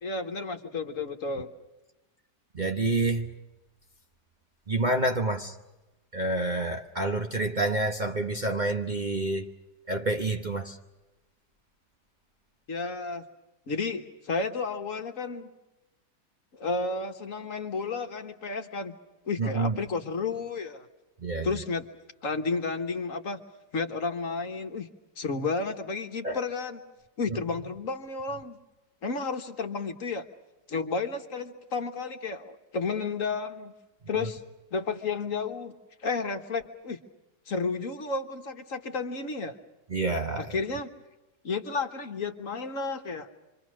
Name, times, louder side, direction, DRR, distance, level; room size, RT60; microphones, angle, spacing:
voice 1, 0.0-1.5 12.7-13.2 13.7-15.5 16.5-18.9 19.3-20.9 21.4-21.9 22.2-23.4 23.7-24.9 25.2-26.8 27.2-28.6 29.0-30.3 30.7-33.7 34.1-34.4 34.7-35.7 36.0-37.0 37.5-39.6 40.4-40.9 41.4-43.3, left 4 dB, 50° left, 1.6 m, -32 dB
voice 2, 2.5-3.3 4.7-5.6 6.1-9.5 9.9-10.8 19.4-19.8 21.2-21.5 26.2-26.4 27.3-27.4 34.1-34.3 39.9-40.5, right 2 dB, 30° right, 1.0 m, -28 dB
27.5 x 24.5 x 6.3 m
omnidirectional pair, 1.8 m